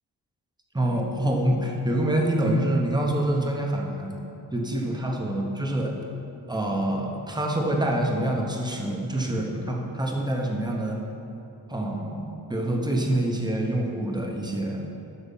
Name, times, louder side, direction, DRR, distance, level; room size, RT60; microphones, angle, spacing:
voice 1, 0.7-4.1 4.5-5.9 6.5-11.0 11.7-12.2 12.5-14.8, right 1 dB, 10° right, 0 dB, 0.8 m, -26 dB
8.3 x 6.0 x 5.3 m, 2.8 s
wide cardioid pair, 160°, 45 cm